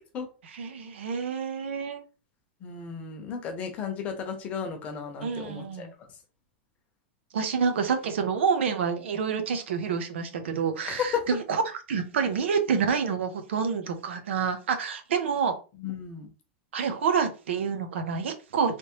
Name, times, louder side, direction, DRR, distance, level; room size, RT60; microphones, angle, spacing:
voice 1, 0.4-2.0 5.2-5.9 7.3-15.5 16.7-18.8, right 6 dB, 85° right, 0.8 m, -28 dB
voice 2, 2.6-5.9 10.9-11.2 15.8-16.3, left 7 dB, 20° left, 0.8 m, -33 dB
3.4 x 2.9 x 3.1 m
supercardioid pair, 170°, 6 cm